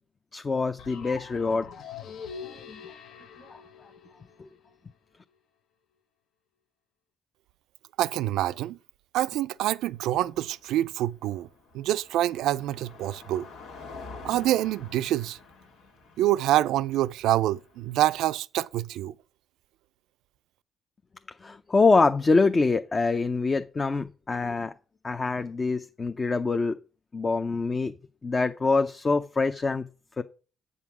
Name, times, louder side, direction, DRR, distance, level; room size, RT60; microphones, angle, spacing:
voice 1, 0.3-1.7 2.4-2.8 3.5-3.6 4.4-4.5 21.4-24.7 25.0-26.8 27.1-27.9 28.2-29.9 30.2-30.3, left 3 dB, 30° left, 0.5 m, -25 dB
sound 1, 0.8-4.7, left 6 dB, 70° left, 0.8 m, -43 dB
voice 2, 8.0-8.8 9.1-11.5 11.7-13.5 14.2-15.4 16.2-19.1, right 14 dB, 90° right, 0.3 m, -26 dB
Car passing by, 9.9-18.2, left 4 dB, 90° left, 1.9 m, -48 dB
8.4 x 5.4 x 5.9 m
cardioid pair, 90°, 0 cm